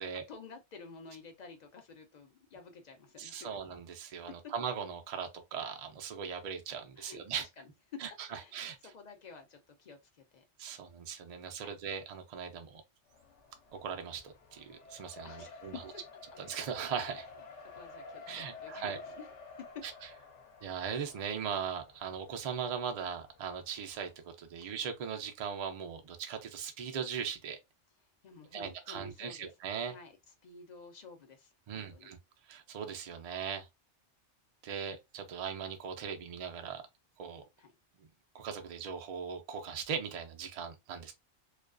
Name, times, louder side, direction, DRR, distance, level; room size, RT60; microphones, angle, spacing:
voice 1, 0.3-3.6 4.1-4.3 7.0-7.7 8.3-10.4 11.6-11.8 15.2-16.0 17.6-19.7 24.5-24.7 28.2-29.5 29.8-32.1 37.6-37.7, left 4 dB, 55° left, 0.5 m, -52 dB
voice 2, 3.2-7.5 8.0-8.8 10.6-12.8 13.8-15.8 16.4-17.3 18.3-19.0 19.8-19.9 20.6-27.6 28.5-29.9 31.7-32.2 32.5-33.7 34.6-36.8 37.2-37.4 38.0-38.1 38.3-41.1, right 7 dB, 65° right, 0.3 m, -39 dB
Race car auto racing, 13.1-24.1, left 4 dB, 80° left, 0.9 m, -52 dB
2.3 x 2.2 x 2.4 m
omnidirectional pair, 1.2 m